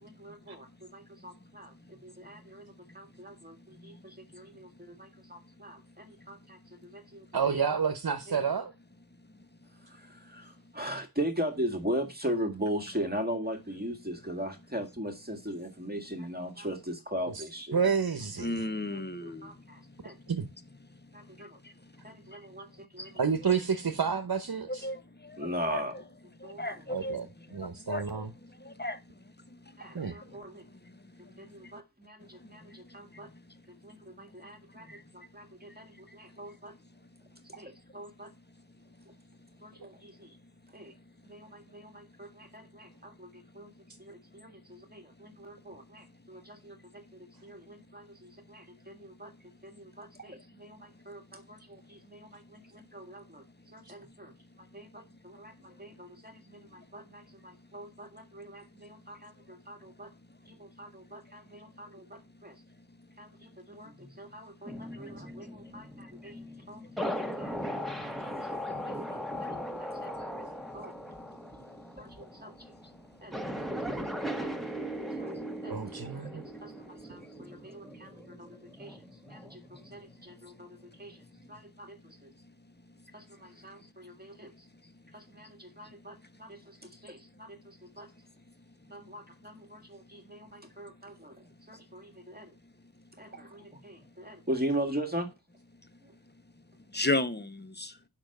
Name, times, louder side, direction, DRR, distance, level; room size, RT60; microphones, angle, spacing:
voice 1, 0.0-7.3 8.3-8.4 9.8-17.8 18.9-20.2 21.1-21.6 22.0-23.1 25.4-26.0 26.4-26.7 29.8-30.7 31.4-33.3 33.8-36.8 37.4-38.3 39.6-40.4 40.7-40.9 41.2-43.7 44.0-47.0 47.4-49.3 49.6-60.1 60.5-62.6 63.2-66.4 66.7-70.5 70.7-71.1 72.0-72.7 73.2-73.4 73.9-74.0 74.4-74.6 75.2-75.3 75.6-78.5 78.8-82.3 83.1-84.5 85.1-88.1 88.9-92.5 93.2-95.3 96.0-96.1, equal, 25° right, 1.9 m, -40 dB
voice 2, 7.3-8.7 17.3-17.4 17.7-18.7 20.3-20.5 23.2-24.8 26.9-27.2 27.5-28.3 29.9-30.1 75.7-76.4, right 6 dB, 70° right, 1.0 m, -29 dB
voice 3, 18.4-19.5 23.0-23.1 23.5-23.6 24.7-25.0 25.4-25.8 26.4-27.2 27.9-28.2 28.7-29.0 96.9-97.9, left 2 dB, 25° left, 1.1 m, -33 dB
sound 1, 64.7-80.5 80.9-81.6, equal, ahead, 1.7 m, -39 dB
7.0 x 5.9 x 6.6 m
wide cardioid pair, 45°, 37 cm